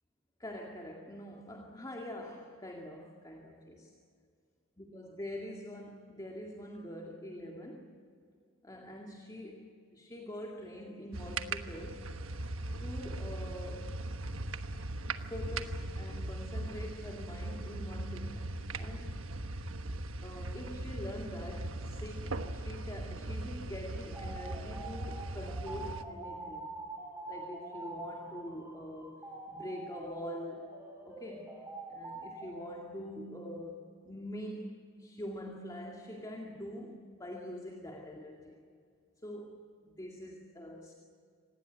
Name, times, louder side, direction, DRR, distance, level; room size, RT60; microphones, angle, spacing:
voice 1, 0.4-3.9 4.8-7.9 8.6-12.1 12.8-13.9 15.3-19.3 20.2-26.7 27.3-29.2 29.5-31.6 31.9-38.6 39.2-40.9, left 1 dB, 20° left, 0 dB, 2.2 m, -44 dB
sound 1, 11.1-26.0, right 2 dB, 75° right, 1.3 m, -39 dB
sound 2, 24.1-32.8, right 2 dB, 15° right, 5.3 m, -45 dB
26.0 x 19.5 x 8.2 m, 2.2 s
head